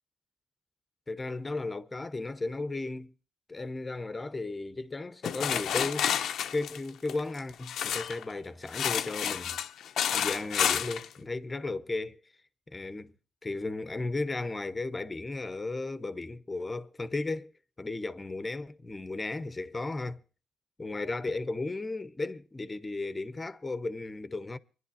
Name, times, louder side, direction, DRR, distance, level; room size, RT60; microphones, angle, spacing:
voice 1, 1.1-3.1 3.5-6.1 6.5-9.6 10.1-12.2 12.7-13.1 13.4-17.5 17.8-20.2 20.8-24.6, left 2 dB, 20° left, 0.9 m, -35 dB
sound 1, 5.2-8.2 8.7-11.1, left 9 dB, 70° left, 0.6 m, -30 dB
24.5 x 11.0 x 2.7 m
cardioid pair, 90°, 0 cm